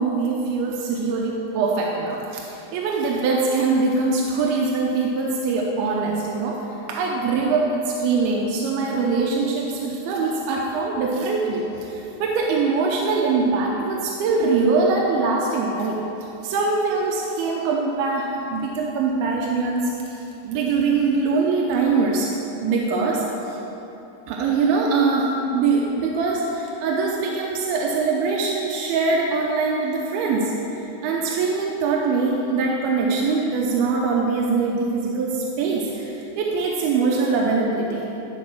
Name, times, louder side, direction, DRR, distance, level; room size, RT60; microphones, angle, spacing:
voice 1, 0.0-6.6 6.9-16.0 16.4-22.3 22.6-23.6 24.3-38.1, right 4 dB, 80° right, -1 dB, 2.4 m, -23 dB
12.5 x 4.8 x 5.9 m, 3.0 s
omnidirectional pair, 5.0 m